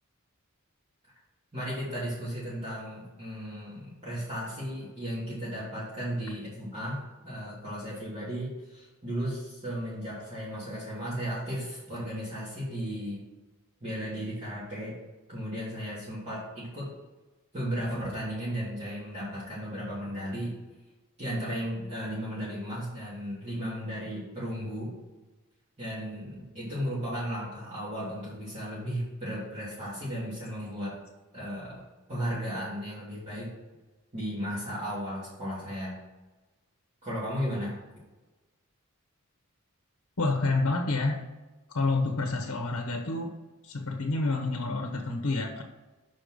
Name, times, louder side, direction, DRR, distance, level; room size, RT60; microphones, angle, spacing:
voice 1, 1.5-13.2 13.8-14.9 15.3-16.9 17.5-20.5 21.2-24.9 25.8-31.0 31.3-31.8 32.1-33.5 34.1-36.0 37.0-37.7, equal, 30° right, -11 dB, 2.9 m, -35 dB
voice 2, 40.2-41.2 41.7-43.3 43.6-45.6, left 3 dB, 80° left, 4 dB, 0.9 m, -28 dB
6.0 x 5.2 x 6.3 m, 1.1 s
head